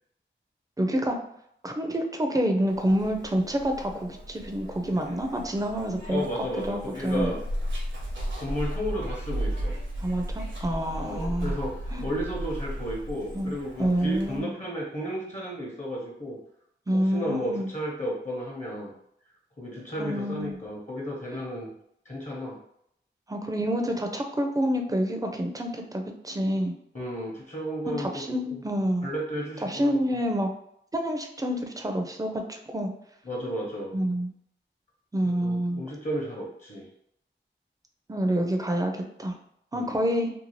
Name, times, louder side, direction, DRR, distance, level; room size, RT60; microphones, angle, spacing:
voice 1, 0.8-1.2 1.6-6.3 6.7-7.3 10.0-11.6 11.9-12.0 13.3-13.5 13.8-14.6 16.9-17.7 20.0-20.6 21.3-21.4 23.3-26.7 27.9-29.1 29.6-30.5 30.9-32.9 33.9-34.3 35.1-35.9 38.1-39.3 39.7-40.3, equal, 15° right, 3 dB, 0.5 m, -28 dB
Zipper (clothing), 2.7-14.4, equal, 70° right, 0.7 m, -35 dB
voice 2, 6.1-7.4 8.3-9.7 11.0-11.7 12.0-16.4 16.9-18.9 19.6-21.7 22.0-22.6 26.9-28.2 28.5-28.6 29.0-30.0 33.2-34.0 35.2-36.9 39.7-40.0, equal, 35° left, -3 dB, 0.9 m, -33 dB
2.6 x 2.3 x 3.0 m, 0.73 s
cardioid pair, 50°, 20 cm